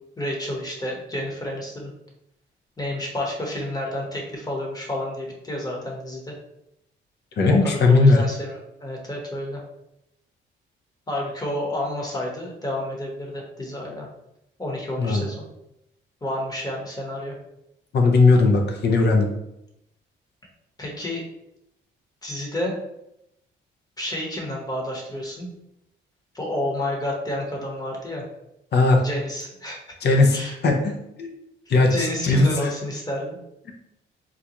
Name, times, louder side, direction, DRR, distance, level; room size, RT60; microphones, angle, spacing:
voice 1, 0.2-1.9 2.8-6.3 7.5-9.6 11.1-14.1 14.6-15.4 16.2-17.3 20.8-21.2 22.2-22.7 24.0-25.5 26.3-28.2 29.0-30.5 31.9-33.4, left 1 dB, 20° left, -1 dB, 1.0 m, -30 dB
voice 2, 7.4-8.2 15.0-15.2 17.9-19.3 28.7-29.0 30.0-30.4 30.6-31.3 31.7-32.7, left 3 dB, 60° left, 2 dB, 0.6 m, -18 dB
3.8 x 2.3 x 2.9 m, 0.83 s
cardioid pair, 90°, 20 cm